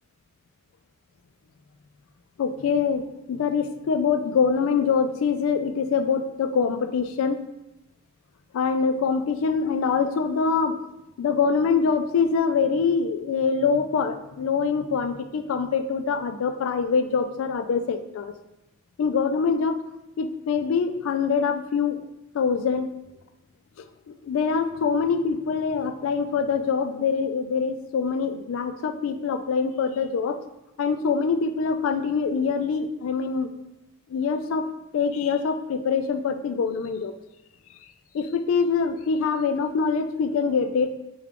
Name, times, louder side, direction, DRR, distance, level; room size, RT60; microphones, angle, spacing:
voice 1, 2.4-7.4 8.5-10.7 11.2-18.3 19.0-19.8 20.2-22.0 22.3-22.9 24.1-30.4 30.8-33.5 34.1-34.7 34.9-37.1 38.1-40.9, left 5 dB, 75° left, 8 dB, 0.3 m, -24 dB
3.6 x 2.3 x 3.5 m, 0.93 s
head